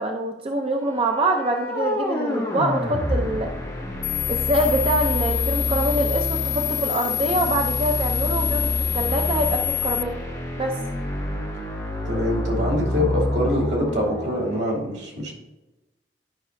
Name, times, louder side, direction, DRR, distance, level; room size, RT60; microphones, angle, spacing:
voice 1, 0.0-3.5 4.3-10.2 10.6-10.8, right 1 dB, 35° right, 3 dB, 0.5 m, -25 dB
sound 1, 0.7-14.6, left 1 dB, 20° left, 2.2 m, -28 dB
sound 2, 4.0-10.0, left 21 dB, 85° left, 0.3 m, -27 dB
voice 2, 12.0-15.3, left 1 dB, 80° right, -1 dB, 2.4 m, -25 dB
10.5 x 5.4 x 2.6 m, 1.0 s
head